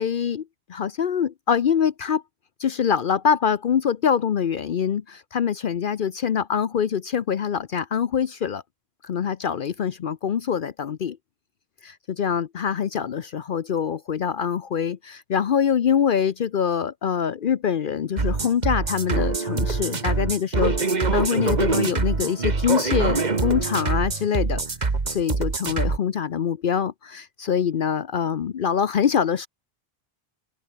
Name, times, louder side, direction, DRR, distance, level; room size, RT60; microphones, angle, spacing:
voice 1, 0.0-2.2 2.6-8.6 9.0-11.2 11.8-20.8 21.1-24.6 25.1-29.5, left 7 dB, 60° left, 0.8 m, -24 dB
sound 1, 18.2-26.0, right 4 dB, 45° right, 1.7 m, -24 dB
open air
omnidirectional pair, 1.0 m